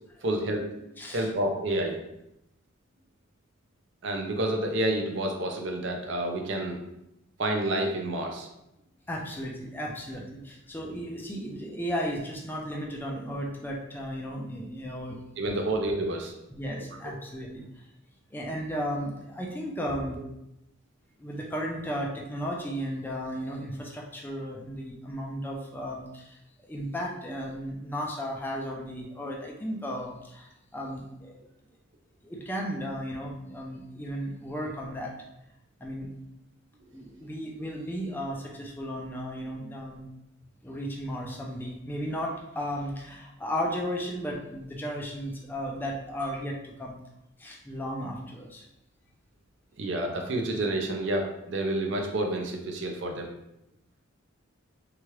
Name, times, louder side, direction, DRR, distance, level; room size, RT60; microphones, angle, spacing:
voice 1, 0.2-2.0 4.0-6.8 7.4-8.5 15.4-16.3 49.8-53.3, right 1 dB, 60° right, 3 dB, 0.5 m, -29 dB
voice 2, 1.0-1.3 9.1-15.2 16.5-17.6 18.3-20.2 21.2-26.4 26.7-31.4 32.2-35.1 35.8-36.1 36.9-40.1 40.6-47.0 47.4-48.6, equal, 10° left, -1 dB, 0.4 m, -35 dB
2.9 x 2.4 x 3.1 m, 0.86 s
head